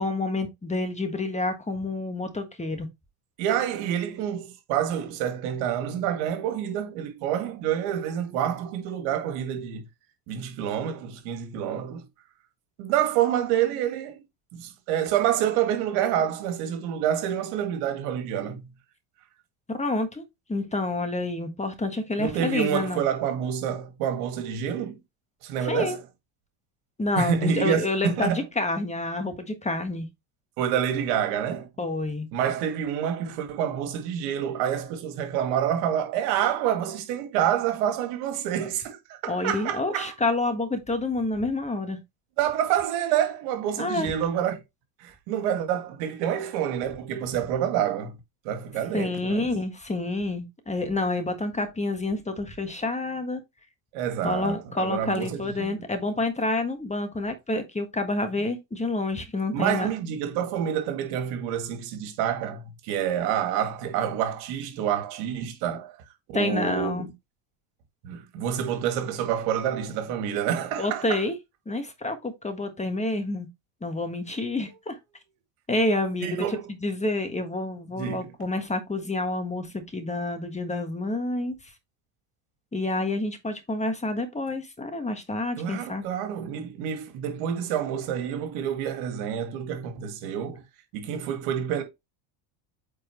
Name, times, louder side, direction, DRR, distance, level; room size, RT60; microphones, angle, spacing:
voice 1, 0.0-2.9 19.7-20.2 20.5-23.0 25.6-26.0 27.0-30.1 31.8-32.3 39.3-42.0 43.8-44.1 48.9-53.4 54.2-59.9 66.3-67.1 70.8-71.4 71.6-73.5 73.8-75.0 75.7-81.6 82.7-86.0, left 2 dB, 15° left, 1.5 m, -28 dB
voice 2, 3.4-9.8 10.3-12.1 12.8-14.2 14.5-18.7 22.2-25.0 25.4-26.0 27.2-28.4 30.6-31.7 32.3-40.1 42.4-44.6 45.0-48.2 48.4-49.5 53.9-55.8 59.5-66.0 66.3-67.1 68.0-71.2 76.2-76.6 78.0-78.3 85.6-90.6 90.9-91.8, right 9 dB, 85° right, 2.2 m, -28 dB
8.5 x 4.5 x 3.1 m
supercardioid pair, 105°, 49 cm